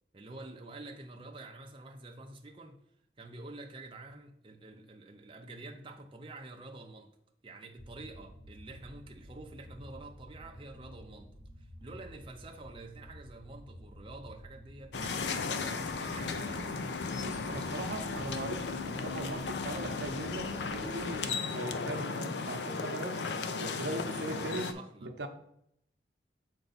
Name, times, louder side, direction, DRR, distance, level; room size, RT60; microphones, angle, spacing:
voice 1, 0.1-2.8 3.2-7.1 7.4-16.9 17.5-17.9 23.9-25.3, right 2 dB, 30° right, 0.6 m, -48 dB
sound 1, 7.8-21.2, equal, 25° left, 0.8 m, -52 dB
sound 2, 14.9-24.7, left 4 dB, 80° left, 0.5 m, -35 dB
voice 2, 17.2-23.2 23.6-24.7 25.0-25.3, right 2 dB, 80° right, 0.7 m, -39 dB
6.7 x 4.6 x 4.0 m
head